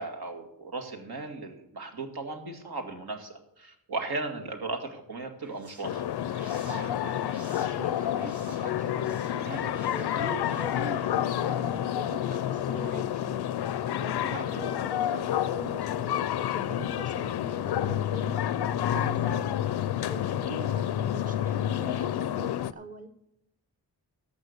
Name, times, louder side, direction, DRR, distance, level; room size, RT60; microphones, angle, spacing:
voice 1, 0.0-6.1 14.4-14.6, right 3 dB, 70° right, 4 dB, 2.0 m, -36 dB
sound 1, 5.2-13.2, right 2 dB, 50° right, 3.8 m, -51 dB
sound 2, 5.8-22.7, left 11 dB, 80° left, 0.6 m, -29 dB
voice 2, 6.6-23.1, right 3 dB, 20° right, 8 dB, 0.9 m, -43 dB
13.5 x 5.8 x 8.0 m, 0.80 s
wide cardioid pair, 90°, 39 cm